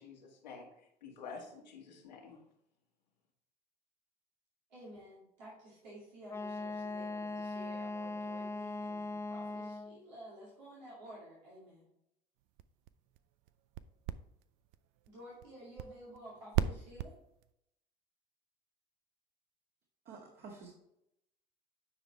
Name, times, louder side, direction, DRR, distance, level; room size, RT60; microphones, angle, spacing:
voice 1, 0.0-2.4, left 5 dB, 90° left, -1 dB, 1.9 m, -49 dB
voice 2, 4.7-11.9 15.1-17.1, right 1 dB, 85° right, -7 dB, 2.4 m, -52 dB
Wind instrument woodwind instrument, 6.3-10.0, left 2 dB, 10° left, 0.4 m, -40 dB
sound 1, 12.4-17.5, right 11 dB, 65° right, 0.5 m, -40 dB
voice 3, 20.1-20.7, right 4 dB, 50° right, -2 dB, 2.1 m, -50 dB
9.9 x 5.0 x 3.2 m, 0.80 s
hypercardioid pair, 70°, 21 cm